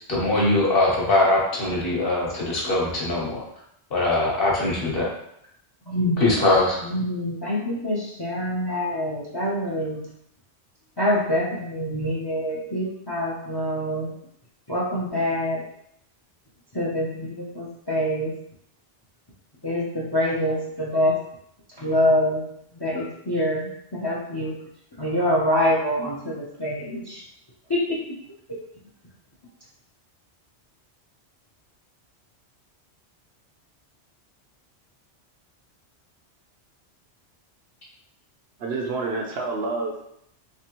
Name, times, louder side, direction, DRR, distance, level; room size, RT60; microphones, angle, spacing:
voice 1, 0.1-3.4 3.9-5.1 6.2-6.8, left 2 dB, 60° left, -4 dB, 1.2 m, -21 dB
voice 2, 5.9-6.5 6.8-10.0 11.0-14.1 14.7-15.6 16.7-18.3 19.6-21.1 21.8-22.4 22.8-24.5 25.0-27.2 27.7-28.0, left 1 dB, 30° left, -4 dB, 0.5 m, -25 dB
voice 3, 38.6-40.1, right 3 dB, 70° right, 0 dB, 0.8 m, -28 dB
3.3 x 3.3 x 2.9 m, 0.74 s
omnidirectional pair, 1.1 m